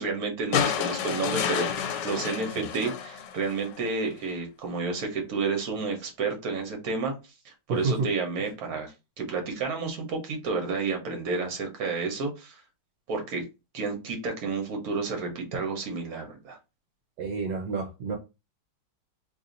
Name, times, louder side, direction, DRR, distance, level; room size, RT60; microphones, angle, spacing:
voice 1, 0.0-7.1 7.4-8.9 9.2-12.6 13.1-13.4 13.7-16.6, right 4 dB, 60° right, 1.4 m, -31 dB
sound 1, 0.5-3.8 5.2-5.3, left 8 dB, 80° left, 1.2 m, -30 dB
voice 2, 7.7-8.1 17.2-18.2, right 4 dB, 75° right, 1.3 m, -29 dB
3.2 x 2.7 x 3.8 m
omnidirectional pair, 1.9 m